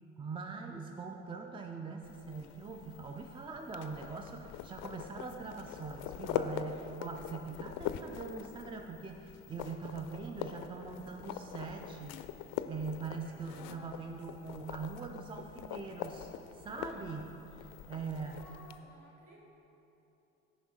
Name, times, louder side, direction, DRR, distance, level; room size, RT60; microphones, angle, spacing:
voice 1, 0.2-12.3 12.7-18.4, right 4 dB, 15° right, 4 dB, 0.4 m, -42 dB
sound 1, 2.0-18.8, left 10 dB, 60° left, 0.5 m, -43 dB
voice 2, 17.9-19.4, equal, 50° right, -3 dB, 1.7 m, -57 dB
10.0 x 5.1 x 4.0 m, 3.0 s
figure-of-eight pair, 40°, 39 cm